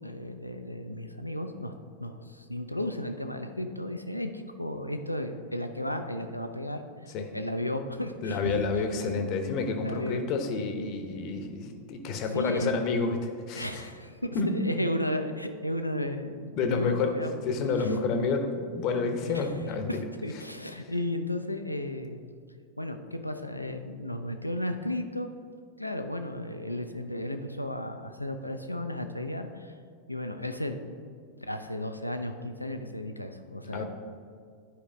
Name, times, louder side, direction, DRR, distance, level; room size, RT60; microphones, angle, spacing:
voice 1, 0.0-1.8 2.0-8.5 9.8-10.2 12.3-12.8 13.6-17.3 17.8-17.9 19.3-19.5 19.9-22.2 22.8-25.3 25.8-29.8 30.1-30.8 31.5-33.8, left 1 dB, 90° left, 6 dB, 0.5 m, -34 dB
voice 2, 8.2-13.8 14.3-14.5 16.6-17.1 17.4-20.0 33.7-33.8, left 4 dB, 40° left, 6 dB, 0.9 m, -29 dB
11.0 x 4.9 x 3.4 m, 2.1 s
figure-of-eight pair, 90°, 0 cm